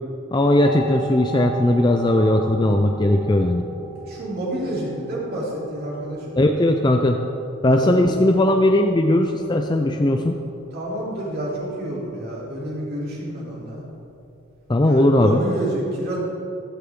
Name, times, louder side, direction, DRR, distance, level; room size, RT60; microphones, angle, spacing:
voice 1, 0.3-3.7 6.4-7.2 7.6-10.4 14.7-15.4, left 1 dB, 20° left, 4 dB, 0.5 m, -18 dB
sound 1, 0.5-15.3, right 2 dB, 80° right, 3.5 m, -38 dB
voice 2, 4.0-6.3 7.8-8.1 10.7-13.8 14.8-16.2, right 1 dB, 45° right, -5 dB, 3.4 m, -29 dB
15.5 x 13.5 x 3.8 m, 2.8 s
head